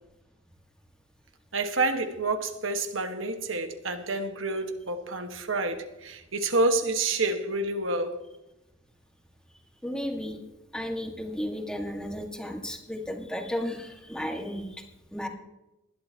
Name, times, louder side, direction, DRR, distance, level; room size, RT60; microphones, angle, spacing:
voice 1, 1.5-8.2, right 2 dB, 75° right, 1.5 m, -28 dB
voice 2, 9.8-10.4 10.7-14.8 15.1-15.3, equal, 5° left, 1.8 m, -34 dB
20.5 x 12.0 x 3.0 m
head